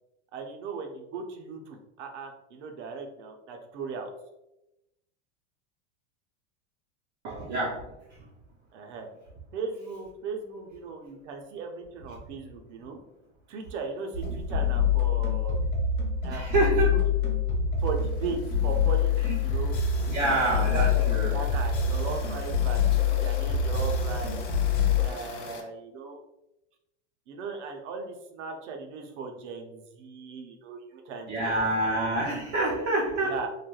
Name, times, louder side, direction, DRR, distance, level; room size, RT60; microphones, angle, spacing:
voice 1, 0.3-4.1 8.7-9.1 9.5-13.0 13.5-15.7 16.2-17.0 17.8-19.8 20.3-21.0 21.3-24.5 25.0-26.2 27.3-31.5 33.2-33.5, right 4 dB, 75° right, 3 dB, 0.6 m, -37 dB
voice 2, 7.2-7.9 16.3-17.1 19.2-19.4 20.1-21.4 31.3-33.5, right 2 dB, 25° right, -5 dB, 0.4 m, -27 dB
sound 1, 14.1-25.1, left 6 dB, 25° left, 1.0 m, -26 dB
sound 2, 17.8-25.6, left 3 dB, 50° left, 0.5 m, -44 dB
3.1 x 2.2 x 2.2 m, 0.91 s
supercardioid pair, 150°, 35 cm